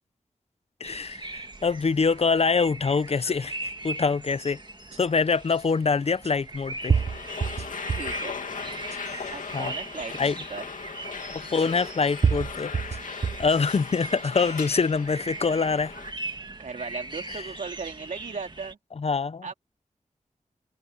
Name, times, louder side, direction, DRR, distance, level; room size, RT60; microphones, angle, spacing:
voice 1, 0.8-4.6 5.0-7.0 9.5-9.7 10.2-10.4 11.3-12.9 13.4-15.9 17.3-17.4 19.0-19.5, left 5 dB, 50° left, 0.7 m, -25 dB
sound 1, 0.8-18.7, right 2 dB, 35° right, 1.9 m, -40 dB
sound 2, 4.9-5.0 6.2-6.3 6.9-8.2 8.7-9.3 10.2-10.3 11.6-11.7 12.2-13.5 14.1-14.6, right 6 dB, 55° right, 0.8 m, -27 dB
sound 3, 6.6-16.1, left 5 dB, 90° left, 2.5 m, -38 dB
voice 2, 7.9-8.4 9.3-10.6 16.6-18.8 19.4-19.5, right 4 dB, 75° right, 3.1 m, -37 dB
wide cardioid pair, 65°, 13 cm